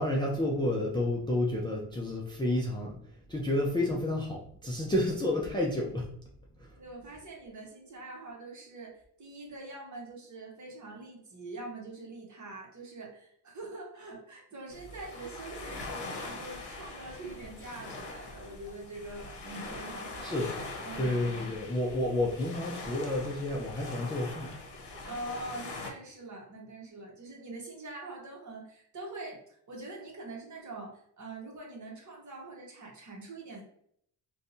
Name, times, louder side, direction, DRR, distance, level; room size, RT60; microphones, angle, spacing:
voice 1, 0.0-3.0 3.3-6.1 6.6-6.8 20.2-20.5 21.0-24.5, left 1 dB, 10° left, -3 dB, 0.4 m, -30 dB
voice 2, 6.8-20.3 20.8-21.2 25.0-33.6, right 2 dB, 40° right, -1 dB, 1.0 m, -44 dB
sound 1, 14.7-25.9, left 3 dB, 60° left, 0.8 m, -42 dB
2.6 x 2.3 x 2.6 m, 0.68 s
cardioid pair, 80°, 46 cm